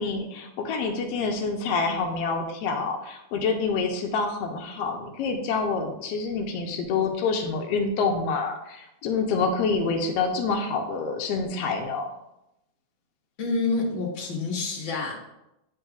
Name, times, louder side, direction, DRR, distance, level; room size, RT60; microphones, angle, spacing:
voice 1, 0.0-12.1, left 4 dB, 80° left, 2 dB, 1.4 m, -27 dB
voice 2, 13.4-15.2, left 3 dB, 45° left, -3 dB, 0.9 m, -28 dB
9.3 x 4.8 x 2.3 m, 0.90 s
omnidirectional pair, 3.4 m